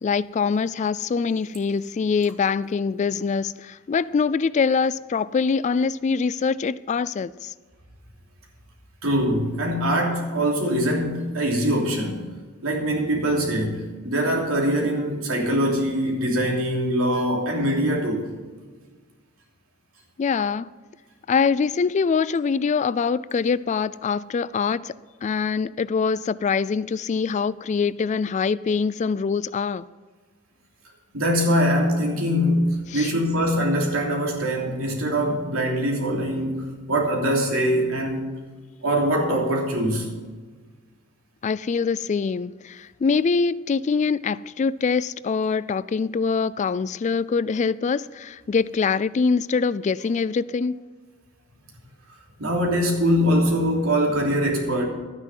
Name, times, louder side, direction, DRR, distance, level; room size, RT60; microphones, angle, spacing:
voice 1, 0.0-7.5 20.2-20.7 21.3-24.9 25.2-29.8 32.9-33.1 41.4-50.8, left 5 dB, 35° left, 0.3 m, -24 dB
voice 2, 9.0-12.2 12.6-18.3 31.1-38.3 38.8-40.1 52.4-54.8, equal, 80° right, 3.1 m, -23 dB
12.5 x 9.8 x 5.5 m
head